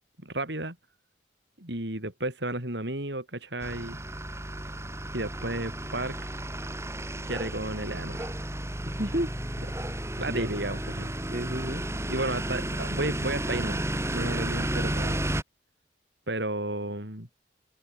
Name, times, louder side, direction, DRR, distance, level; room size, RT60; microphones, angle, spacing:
voice 1, 0.2-0.8 1.6-4.0 5.1-6.1 7.2-8.3 10.2-11.1 12.1-15.2 16.3-17.3, right 2 dB, 70° right, 6.1 m, -33 dB
sound 1, 3.6-15.4, right 1 dB, 15° right, 6.0 m, -32 dB
voice 2, 8.9-10.6 11.3-11.8, equal, 45° right, 5.0 m, -34 dB
open air
head